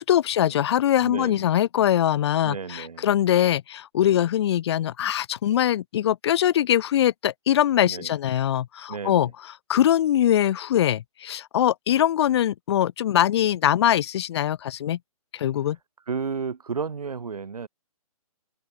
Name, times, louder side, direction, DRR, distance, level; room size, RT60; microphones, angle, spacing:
voice 1, 0.0-15.0 15.3-15.8, left 11 dB, 45° left, 0.8 m, -22 dB
voice 2, 1.0-1.6 2.4-3.1 7.8-8.1 8.9-9.3 16.1-17.7, right 5 dB, 85° right, 2.7 m, -32 dB
hypercardioid pair, 150°, 19 cm